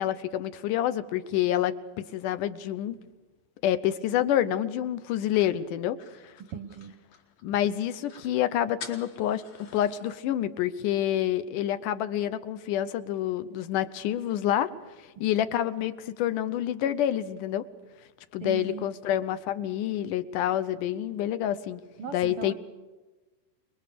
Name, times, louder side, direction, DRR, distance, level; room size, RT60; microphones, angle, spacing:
voice 1, 0.0-3.0 3.6-6.0 7.4-9.4 9.7-14.7 15.0-17.6 18.3-21.8 22.1-22.5, left 11 dB, 80° left, 13 dB, 2.4 m, -28 dB
sound 1, 5.1-7.5 7.8-7.9 8.1-8.3 8.8-10.1, left 5 dB, 55° left, 3.6 m, -47 dB
voice 2, 6.5-7.0 18.4-18.9 22.0-22.5, right 5 dB, 75° right, 8 dB, 1.3 m, -38 dB
25.5 x 21.5 x 6.8 m, 1.2 s
omnidirectional pair, 3.7 m